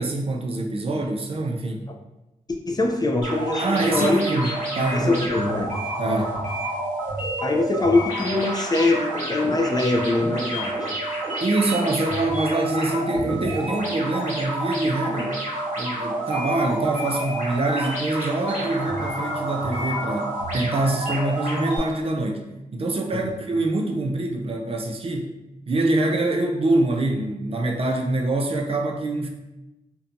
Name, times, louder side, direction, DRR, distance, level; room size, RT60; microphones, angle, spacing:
voice 1, 0.0-1.9 3.6-5.2 6.0-6.3 11.4-15.3 15.8-22.4 22.7-25.3 25.7-29.3, right 2 dB, 40° right, 1 dB, 0.4 m, -25 dB
voice 2, 2.7-4.2 4.9-5.8 6.1-6.3 7.4-10.8 23.1-23.3, left 2 dB, 25° left, 2 dB, 0.3 m, -23 dB
sound 1, 3.2-21.8, right 1 dB, 60° right, 1.1 m, -29 dB
2.6 x 2.2 x 2.5 m, 0.97 s
cardioid pair, 70°, 14 cm